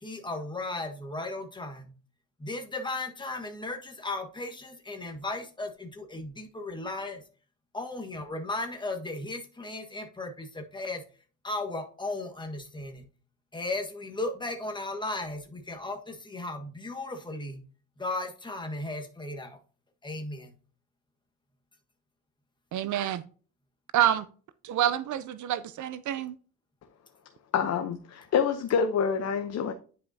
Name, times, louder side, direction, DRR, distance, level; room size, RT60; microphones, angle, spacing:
voice 1, 0.0-1.9 2.4-7.2 7.7-11.0 11.4-13.1 13.5-17.6 18.0-19.6 20.0-20.5, left 2 dB, 15° left, 1.5 m, -36 dB
voice 2, 22.7-23.2 23.9-24.3 24.6-26.3, right 11 dB, 65° right, 0.6 m, -27 dB
voice 3, 27.5-29.7, left 7 dB, 55° left, 0.9 m, -27 dB
9.7 x 5.5 x 2.8 m
cardioid pair, 120°, 31 cm